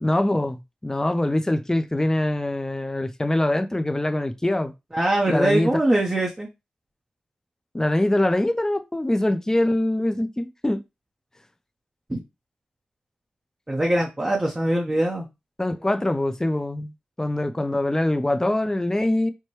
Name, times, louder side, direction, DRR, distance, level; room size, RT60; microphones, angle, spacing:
voice 1, 0.0-4.7 5.3-5.8 7.7-10.8 15.6-16.9 17.2-19.3, left 1 dB, 15° left, 0.5 m, -23 dB
voice 2, 4.9-6.5 12.1-12.2 13.7-15.3, right 1 dB, 20° right, 0.9 m, -22 dB
4.5 x 2.2 x 3.1 m
cardioid pair, 50°, 3 cm